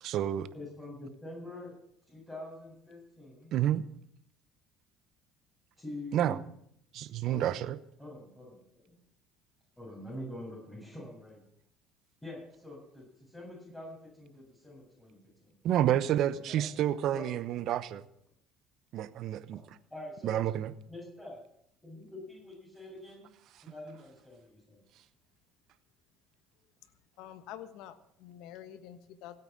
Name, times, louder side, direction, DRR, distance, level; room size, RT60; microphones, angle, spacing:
voice 1, 0.0-0.5 3.5-3.9 6.1-6.4 6.9-7.8 15.6-18.0 18.9-19.6 20.2-20.7, right 11 dB, 60° right, 15 dB, 0.9 m, -29 dB
voice 2, 0.5-1.8 2.1-3.5 5.8-6.4 7.3-7.6 8.0-8.6 8.9-9.0 9.8-11.4 12.2-15.5 16.5-16.6 17.1-17.4 19.9-20.4 20.9-21.4 21.8-23.3 23.6-24.8, left 1 dB, 15° left, -4 dB, 7.5 m, -45 dB
voice 3, 27.2-29.4, left 11 dB, 70° left, 11 dB, 1.4 m, -47 dB
16.5 x 9.0 x 7.5 m, 0.72 s
hypercardioid pair, 75°, 0 cm